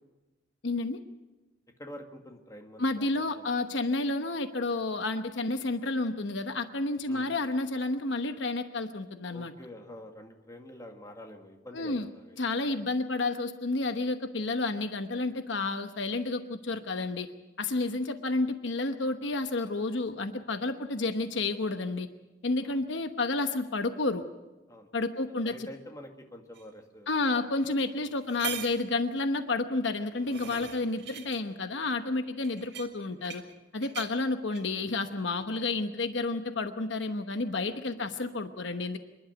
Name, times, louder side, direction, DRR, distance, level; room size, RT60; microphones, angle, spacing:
voice 1, 0.6-1.0 2.8-9.5 11.7-12.1 12.4-17.3 17.6-22.1 22.4-24.2 24.9-25.7 27.1-33.4 33.7-39.0, left 3 dB, 70° left, 8 dB, 1.0 m, -30 dB
voice 2, 1.8-3.5 7.1-7.3 9.3-12.7 20.7-20.8 22.6-22.8 24.7-27.5 28.0-28.1 34.0-34.1 37.9-38.1, left 1 dB, 20° left, 3 dB, 2.1 m, -48 dB
sound 1, 26.5-26.6 27.6-27.7 28.1-28.9 29.8-31.4 32.4-33.5 33.8-34.1 34.5-34.8, right 8 dB, 60° right, 2.2 m, -41 dB
26.5 x 11.5 x 9.3 m, 1.1 s
head